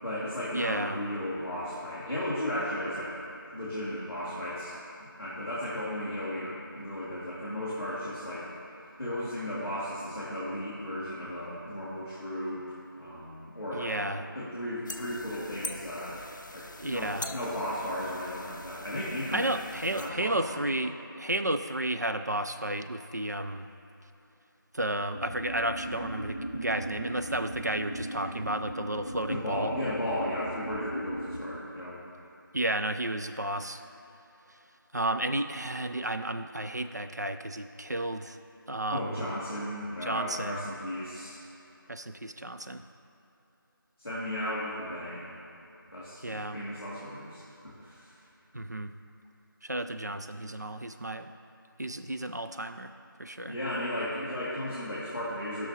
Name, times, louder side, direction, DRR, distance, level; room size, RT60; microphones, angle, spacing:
voice 1, 0.0-3.1 3.5-4.7 5.0-8.5 9.0-16.2 16.5-19.5 20.0-20.6 29.3-32.0 38.9-41.4 44.0-45.2 45.9-48.1 53.5-55.7, left 1 dB, 10° left, -20 dB, 1.0 m, -35 dB
voice 2, 0.5-1.0 13.7-14.3 16.8-17.3 19.3-23.7 24.7-29.7 32.5-33.8 34.9-38.4 38.7-39.3 40.0-40.6 41.9-42.8 46.2-46.6 48.5-48.9 49.6-51.3 51.8-52.9 53.2-53.6, right 1 dB, 50° right, 8 dB, 0.4 m, -32 dB
sound 1, 14.9-20.1, left 2 dB, 55° left, 0.5 m, -43 dB
sound 2, 25.1-31.4, right 1 dB, 20° right, 1.0 m, -38 dB
14.5 x 6.1 x 2.9 m, 2.9 s
figure-of-eight pair, 180°, 12 cm